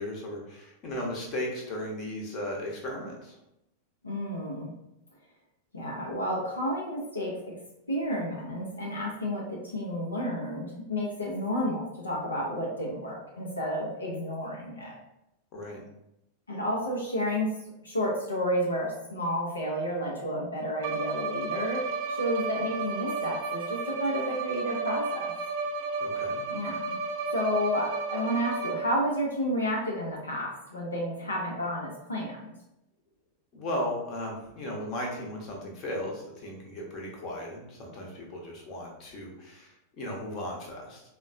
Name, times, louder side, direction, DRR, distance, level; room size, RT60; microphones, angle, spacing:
voice 1, 0.0-3.3 15.5-15.8 26.0-26.4 33.5-41.0, left 1 dB, 35° left, -1 dB, 0.9 m, -36 dB
voice 2, 4.0-4.7 5.7-7.5 7.9-14.9 16.5-17.5 17.8-21.8 22.1-25.3 26.5-27.0 27.3-32.5, equal, 75° left, -3 dB, 0.6 m, -31 dB
Bowed string instrument, 20.8-29.1, right 4 dB, 50° right, 0.4 m, -33 dB
3.9 x 2.1 x 2.5 m, 0.88 s
figure-of-eight pair, 90°, 0 cm